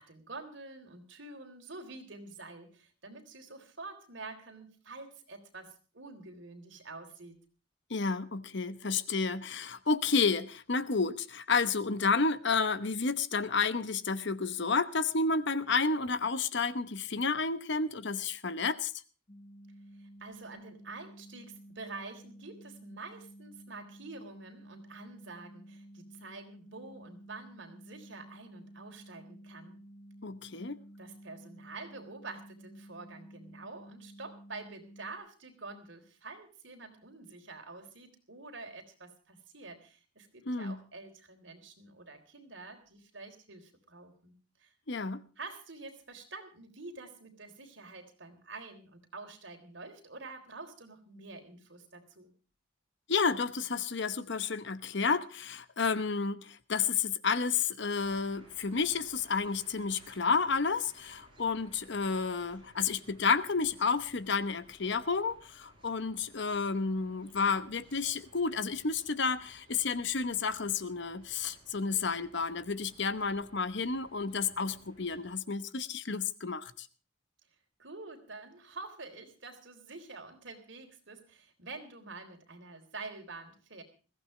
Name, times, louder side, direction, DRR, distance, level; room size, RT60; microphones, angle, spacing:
voice 1, 0.0-7.4 20.0-29.8 31.0-44.3 44.6-44.7 45.4-52.3 77.8-83.8, right 3 dB, 65° right, 3.8 m, -47 dB
voice 2, 7.9-18.9 30.2-30.8 40.5-40.8 44.9-45.2 53.1-76.9, left 4 dB, 60° left, 1.0 m, -31 dB
sound 1, 19.3-35.2, right 1 dB, 30° left, 1.7 m, -53 dB
sound 2, 58.0-75.3, right 1 dB, 25° right, 6.4 m, -60 dB
21.0 x 15.5 x 3.2 m
head